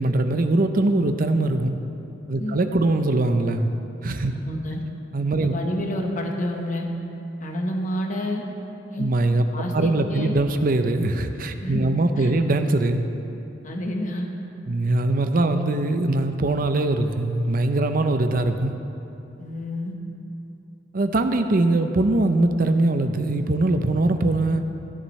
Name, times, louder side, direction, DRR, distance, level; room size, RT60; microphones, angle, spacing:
voice 1, 0.0-1.7 2.3-3.7 4.0-4.3 5.1-5.5 9.0-9.5 9.7-13.0 14.7-18.7 20.9-24.6, right 2 dB, 50° right, 8 dB, 0.6 m, -22 dB
voice 2, 4.4-4.8 5.4-6.9 7.4-8.4 8.9-9.1 9.5-10.4 11.6-12.3 13.6-14.3 19.4-19.9, left 1 dB, 45° left, 1 dB, 1.2 m, -29 dB
16.0 x 11.0 x 3.2 m, 2.9 s
head